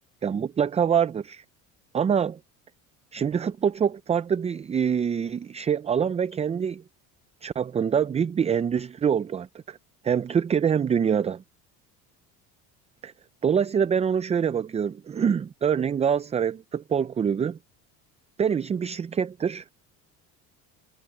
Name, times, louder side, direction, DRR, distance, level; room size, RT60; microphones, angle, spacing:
voice 1, 0.2-1.4 1.9-2.4 3.1-6.8 7.4-9.8 10.0-11.4 13.0-13.1 13.4-17.6 18.4-19.6, right 7 dB, 20° right, 0.4 m, -25 dB
supercardioid pair, 105°, 37 cm